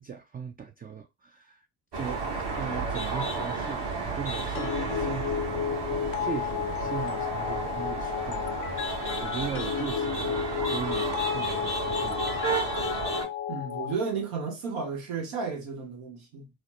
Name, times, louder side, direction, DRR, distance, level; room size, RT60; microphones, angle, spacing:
voice 1, 0.0-1.7 1.9-5.4 5.6-12.3, right 7 dB, 20° right, 0.3 m, -39 dB
sound 1, 1.9-13.3, right 3 dB, 60° right, 1.2 m, -32 dB
sound 2, 4.6-13.9, left 9 dB, 45° left, 0.5 m, -32 dB
voice 2, 13.5-16.5, right 5 dB, 80° right, 1.1 m, -33 dB
3.1 x 2.0 x 3.0 m
hypercardioid pair, 45°, 47 cm